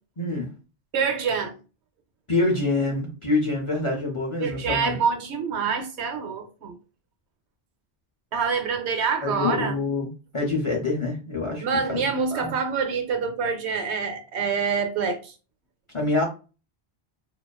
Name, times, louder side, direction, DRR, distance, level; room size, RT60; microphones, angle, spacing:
voice 1, 0.2-0.5 2.3-5.0 9.2-12.0 12.3-12.5 15.9-16.3, left 3 dB, 45° left, 0.4 m, -26 dB
voice 2, 0.9-1.5 4.4-6.8 8.3-9.8 11.6-15.3, right 5 dB, 90° right, 0.9 m, -26 dB
2.4 x 2.3 x 2.2 m
omnidirectional pair, 1.1 m